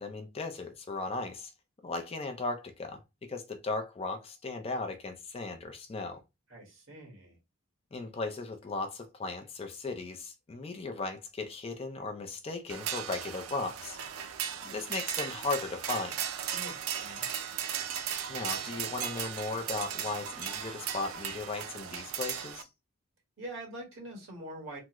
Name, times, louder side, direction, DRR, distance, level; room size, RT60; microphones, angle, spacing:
voice 1, 0.0-1.5 1.8-6.2 7.9-14.0 14.6-16.2 18.3-22.7, left 3 dB, 25° left, 0.4 m, -37 dB
voice 2, 6.5-7.4 16.5-17.5 23.4-24.8, right 1 dB, 70° right, 1.6 m, -44 dB
sound 1, 12.7-22.6, right 9 dB, 85° right, 0.4 m, -37 dB
3.4 x 2.0 x 2.9 m
head